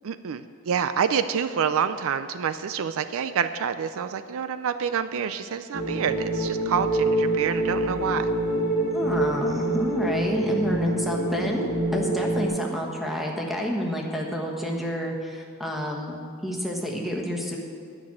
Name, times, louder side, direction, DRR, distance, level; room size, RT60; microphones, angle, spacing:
voice 1, 0.0-8.3, right 7 dB, 65° right, 11 dB, 0.4 m, -27 dB
sound 1, 5.7-12.5, right 1 dB, 90° right, 1.7 m, -26 dB
voice 2, 8.9-17.6, equal, ahead, -1 dB, 1.2 m, -29 dB
10.0 x 6.1 x 8.5 m, 2.3 s
head